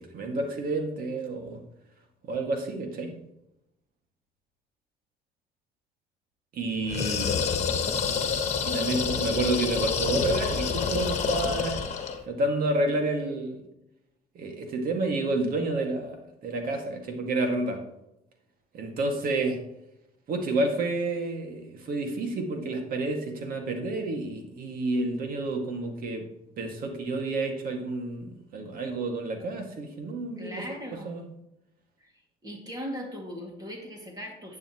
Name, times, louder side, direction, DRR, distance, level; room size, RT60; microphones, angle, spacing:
voice 1, 0.0-1.6 2.3-3.2 6.5-7.3 8.6-11.8 12.3-13.6 14.3-17.8 18.7-19.6 20.3-26.3 26.6-30.6 30.9-31.3, right 2 dB, 60° right, 3 dB, 2.1 m, -30 dB
sound 1, 6.9-12.2, left 6 dB, 40° left, 1.5 m, -28 dB
voice 2, 30.4-31.1 32.0-32.1 32.4-34.6, equal, 25° right, 0 dB, 2.3 m, -38 dB
11.0 x 8.8 x 3.0 m, 0.83 s
cardioid pair, 110°, 17 cm